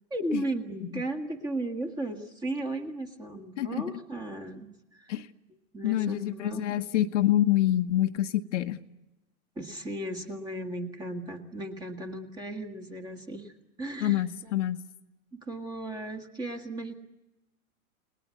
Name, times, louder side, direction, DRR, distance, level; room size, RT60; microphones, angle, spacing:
voice 1, 0.1-5.1 5.7-6.9 9.6-14.2 15.3-16.9, right 1 dB, 10° right, 5 dB, 1.7 m, -36 dB
voice 2, 5.8-8.8 14.0-14.8, left 13 dB, 55° left, 7 dB, 1.1 m, -26 dB
29.0 x 20.0 x 9.4 m, 1.0 s
hypercardioid pair, 160°, 45 cm